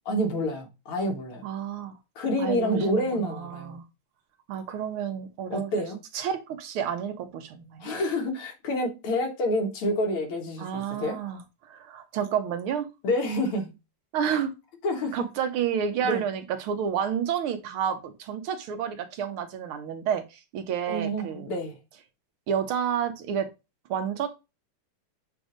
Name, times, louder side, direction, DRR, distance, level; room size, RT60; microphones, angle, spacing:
voice 1, 0.1-1.4 2.2-3.8 5.5-6.0 7.8-11.4 13.0-13.7 14.8-15.2 16.0-16.2 20.9-21.8, left 1 dB, 85° left, 2.5 m, -28 dB
voice 2, 1.4-2.0 2.4-3.8 4.5-5.8 6.1-7.9 10.6-11.4 11.7-12.9 14.1-14.5 15.1-21.5 22.5-23.5 23.9-24.3, right 8 dB, 80° right, 1.7 m, -30 dB
7.5 x 2.6 x 5.0 m
omnidirectional pair, 2.4 m